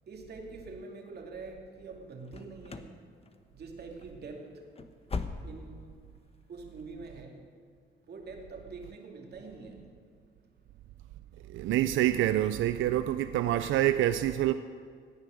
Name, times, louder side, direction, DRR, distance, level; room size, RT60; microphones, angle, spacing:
voice 1, 0.1-3.0 3.5-4.6 5.4-5.9 6.5-7.4 8.1-9.9, right 3 dB, 55° right, 2.5 m, -45 dB
sound 1, 2.2-3.0 3.2-3.7 4.0-4.1 4.6-5.8 6.1-6.2 6.8-6.9, left 4 dB, 30° left, 1.0 m, -39 dB
voice 2, 11.5-14.5, right 13 dB, 75° right, 0.5 m, -26 dB
17.5 x 9.6 x 6.4 m
cardioid pair, 90°, 20 cm